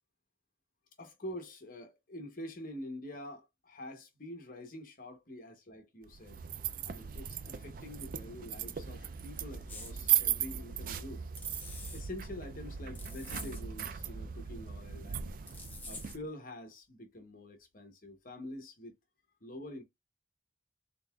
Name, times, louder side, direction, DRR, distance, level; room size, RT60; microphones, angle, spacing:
voice 1, 1.0-6.4 6.9-11.2 11.6-15.4 15.9-18.9 19.4-19.8, left 1 dB, 45° left, 0.8 m, -46 dB
sound 1, 6.1-16.2, right 9 dB, 45° right, 0.3 m, -37 dB
sound 2, 9.7-9.9 11.4-12.0 12.9-13.6 15.5-16.2, left 2 dB, 10° left, 1.1 m, -47 dB
3.8 x 3.7 x 2.3 m
head